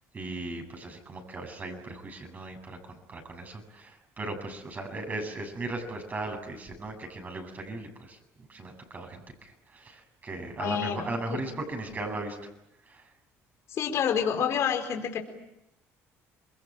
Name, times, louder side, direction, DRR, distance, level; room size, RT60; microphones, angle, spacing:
voice 1, 0.1-12.4 12.9-13.1, right 2 dB, 30° right, 4 dB, 7.9 m, -37 dB
voice 2, 10.6-11.4 13.7-15.2, left 8 dB, 55° left, 4 dB, 4.4 m, -28 dB
28.5 x 22.0 x 9.0 m, 0.86 s
cardioid pair, 105°, 6 cm